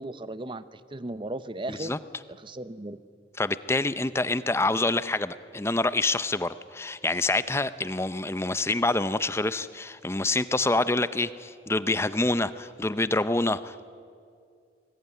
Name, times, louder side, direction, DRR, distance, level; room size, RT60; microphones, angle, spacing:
voice 1, 0.0-1.9 2.3-3.0, right 2 dB, 25° right, 14 dB, 0.8 m, -36 dB
voice 2, 1.7-2.0 3.4-13.8, left 2 dB, 15° left, 15 dB, 0.6 m, -26 dB
24.0 x 20.5 x 9.8 m, 2.3 s
head